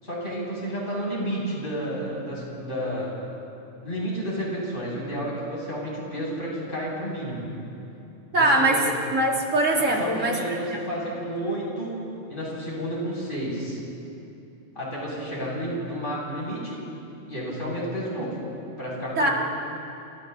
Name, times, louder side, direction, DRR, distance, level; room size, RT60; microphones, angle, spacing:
voice 1, 0.0-3.1 3.8-7.5 8.3-8.9 9.8-11.9 12.3-13.8 14.8-16.8 17.3-18.3 18.8-19.3, equal, 40° left, -5 dB, 7.3 m, -31 dB
voice 2, 8.3-8.8 9.1-10.8 19.2-19.3, right 2 dB, 70° right, -2 dB, 3.1 m, -22 dB
29.5 x 26.5 x 4.1 m, 2.8 s
omnidirectional pair, 1.4 m